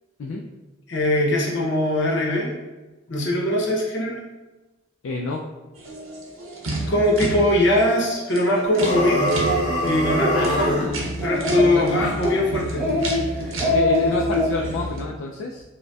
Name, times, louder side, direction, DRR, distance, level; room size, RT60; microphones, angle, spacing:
voice 1, 0.9-2.5 3.1-4.2 6.9-9.3 9.8-10.8 11.2-12.9 13.3-13.6, left 1 dB, 60° left, -2 dB, 0.7 m, -21 dB
voice 2, 5.0-5.4 10.3-11.1 11.7-12.1 13.6-15.6, left 3 dB, 75° left, 0 dB, 0.3 m, -29 dB
sound 1, 5.8-15.0, right 1 dB, 85° right, 0.7 m, -31 dB
sound 2, 8.7-10.9, equal, 40° right, 1.4 m, -24 dB
Speech, 9.4-9.6 10.0-10.3 10.7-10.8 11.2-11.8 12.2-12.4 12.7-13.2 13.5-14.5, left 1 dB, 5° right, 0.7 m, -23 dB
5.0 x 2.1 x 2.3 m, 1.1 s
head